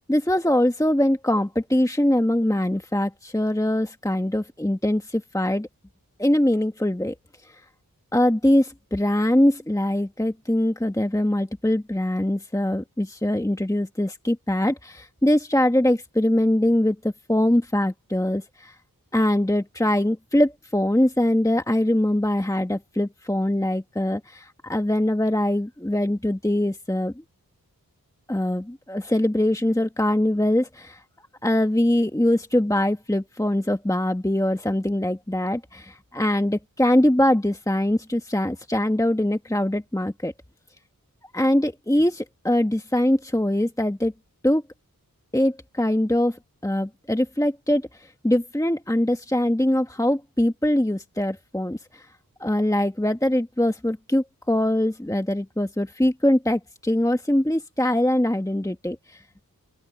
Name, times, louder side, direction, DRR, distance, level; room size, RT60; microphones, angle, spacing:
voice 1, 0.1-5.7 6.2-7.1 7.4-7.6 8.1-18.7 19.1-27.1 28.3-31.0 31.4-40.3 41.3-44.1 44.4-44.6 45.3-52.1 52.4-59.2, left 1 dB, 10° left, 1.6 m, -22 dB
open air
wide cardioid pair, 45°, 35 cm